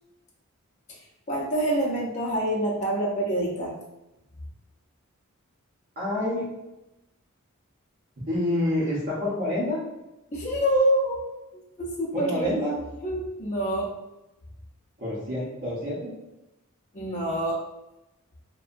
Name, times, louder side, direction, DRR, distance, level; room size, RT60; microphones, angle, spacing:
voice 1, 1.3-3.7 10.3-11.2 11.8-12.6 13.0-13.9 16.9-17.6, right 1 dB, 35° left, -3 dB, 0.6 m, -26 dB
voice 2, 6.0-6.5 8.3-9.8 12.1-12.8 15.0-16.1, left 1 dB, 45° right, -11 dB, 0.8 m, -27 dB
2.7 x 2.2 x 2.5 m, 0.95 s
head